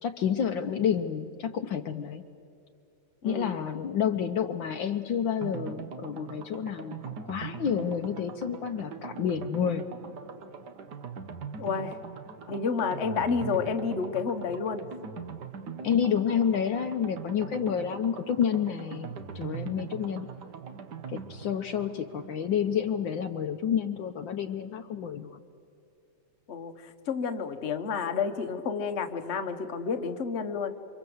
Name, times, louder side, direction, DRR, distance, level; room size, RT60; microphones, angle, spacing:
voice 1, 0.0-2.2 3.2-9.8 15.8-20.3 21.1-25.4, left 8 dB, 70° left, 7 dB, 1.5 m, -29 dB
voice 2, 3.2-3.6 11.6-12.0 12.5-14.8 26.5-30.7, left 5 dB, 35° left, 6 dB, 1.3 m, -30 dB
sound 1, 5.4-24.0 24.3-24.4 24.6-24.7, right 6 dB, 55° right, 1.7 m, -42 dB
28.5 x 25.0 x 7.9 m, 2.5 s
omnidirectional pair, 2.3 m